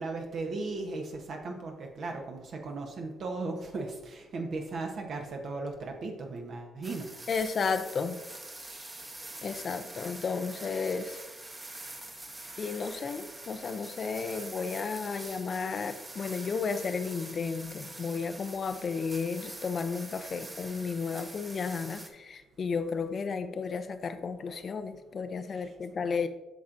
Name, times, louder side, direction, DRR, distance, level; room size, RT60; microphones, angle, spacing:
voice 1, 0.0-7.1, right 3 dB, 60° right, 2 dB, 0.9 m, -36 dB
sound 1, 6.8-22.1, right 2 dB, 20° right, 0.9 m, -45 dB
voice 2, 7.3-8.2 9.4-11.2 12.6-26.3, left 5 dB, 45° left, 11 dB, 0.5 m, -33 dB
8.3 x 5.8 x 2.5 m, 1.1 s
cardioid pair, 90°, 0 cm